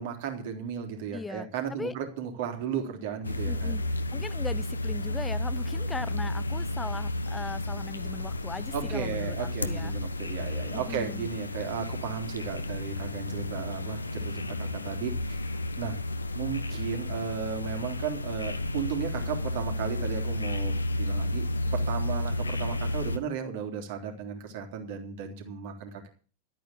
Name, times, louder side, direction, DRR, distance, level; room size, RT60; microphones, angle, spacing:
voice 1, 0.0-3.7 8.7-16.0 16.3-26.1, right 7 dB, 50° right, 4 dB, 3.4 m, -35 dB
voice 2, 1.1-1.9 3.5-3.8 4.1-10.0 10.7-11.3, left 3 dB, 10° left, 17 dB, 0.7 m, -39 dB
sound 1, 3.2-23.2, left 1 dB, 80° left, 1.0 m, -32 dB
13.0 x 9.1 x 7.3 m, 0.39 s
figure-of-eight pair, 90°, 0 cm